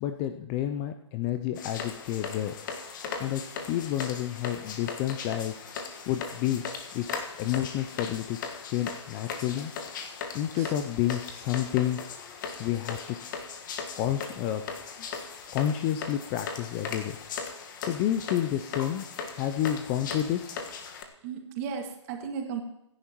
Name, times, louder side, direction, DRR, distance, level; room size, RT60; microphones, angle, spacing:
voice 1, 0.0-2.6 3.2-3.4 3.7-5.5 6.1-6.6 6.9-7.1 7.4-8.4 8.7-9.7 10.3-12.0 12.6-13.0 14.0-14.6 15.0-15.1 15.5-17.2 17.8-19.0 19.3-20.6, left 12 dB, 20° left, 9 dB, 0.5 m, -29 dB
sound 1, 1.6-21.0, left 5 dB, 40° left, 1.5 m, -38 dB
voice 2, 21.2-22.6, right 6 dB, 30° right, 3 dB, 2.1 m, -35 dB
26.5 x 10.5 x 3.0 m, 0.83 s
hypercardioid pair, 145°, 16 cm